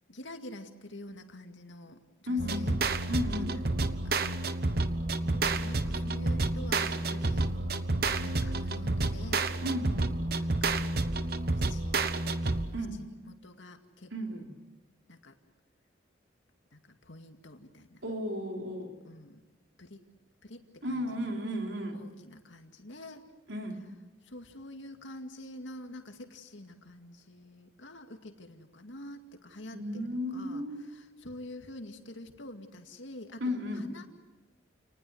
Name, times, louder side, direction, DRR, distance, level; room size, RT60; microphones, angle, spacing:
voice 1, 0.1-2.8 3.2-4.2 5.2-7.5 8.2-9.6 10.3-10.9 11.5-12.0 13.0-14.4 15.1-15.4 16.7-18.0 19.0-19.4 19.8-20.1 20.4-21.3 21.9-23.2 24.2-34.1, left 1 dB, 85° left, 5 dB, 2.3 m, -47 dB
voice 2, 2.3-2.7 3.1-3.6 9.6-10.0 12.7-13.1 14.1-14.5 18.0-19.0 20.8-22.0 23.5-23.9 29.7-30.9 33.4-33.9, left 1 dB, 90° right, 2 dB, 3.8 m, -34 dB
sound 1, 2.4-12.9, right 2 dB, 50° right, 1.0 m, -30 dB
29.0 x 19.5 x 8.0 m, 1.2 s
head